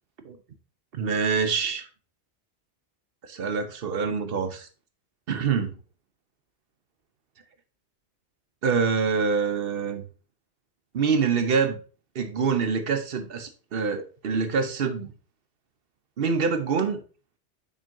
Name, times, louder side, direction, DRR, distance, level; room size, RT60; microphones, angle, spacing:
voice 1, 0.9-1.9 3.2-4.7 5.3-5.7 8.6-10.0 10.9-11.8 12.1-15.1 16.2-17.0, right 5 dB, 60° right, 1.0 m, -25 dB
7.0 x 6.0 x 2.6 m
omnidirectional pair, 1.2 m